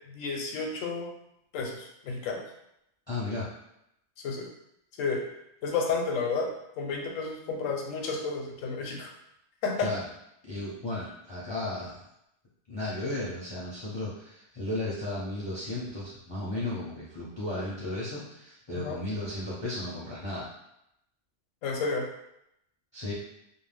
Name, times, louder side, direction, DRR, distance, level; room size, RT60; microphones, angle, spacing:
voice 1, 0.1-1.1 1.5-2.4 4.2-4.5 5.0-5.2 5.6-6.5 6.8-9.1 9.6-9.9 18.7-19.0 21.6-22.1, left 4 dB, 85° left, 1 dB, 1.0 m, -31 dB
voice 2, 3.1-3.5 9.8-10.0 10.5-12.0 12.7-20.5 22.9-23.1, left 2 dB, 35° left, -8 dB, 0.4 m, -34 dB
2.5 x 2.2 x 3.3 m, 0.81 s
omnidirectional pair, 1.3 m